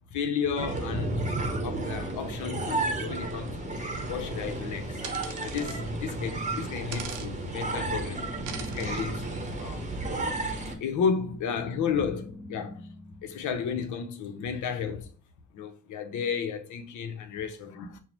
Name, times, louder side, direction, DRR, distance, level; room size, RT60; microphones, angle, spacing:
voice 1, 0.1-1.2 1.6-3.8 4.1-8.3 8.6-9.9 10.7-12.9 13.2-15.1 15.5-18.0, left 6 dB, 75° left, 0.7 m, -33 dB
sound 1, 0.6-10.8, right 2 dB, 25° right, 0.8 m, -32 dB
sound 2, 3.9-14.0, left 2 dB, 50° left, 1.1 m, -47 dB
sound 3, 5.0-5.8 6.9-7.3 8.5-9.0, right 7 dB, 85° right, 0.7 m, -40 dB
5.5 x 2.0 x 3.0 m
cardioid pair, 90°, 30 cm